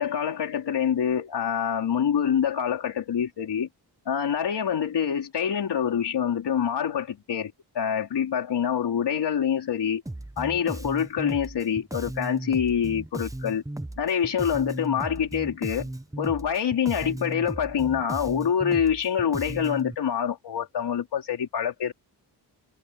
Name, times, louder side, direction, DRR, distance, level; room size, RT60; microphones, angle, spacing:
voice 1, 0.0-3.7 4.1-10.0 10.4-13.6 14.0-15.9 16.2-21.9, left 8 dB, 80° left, 4.3 m, -26 dB
Bass guitar, 10.1-19.9, right 1 dB, 10° right, 1.2 m, -36 dB
cardioid pair, 100°, 41 cm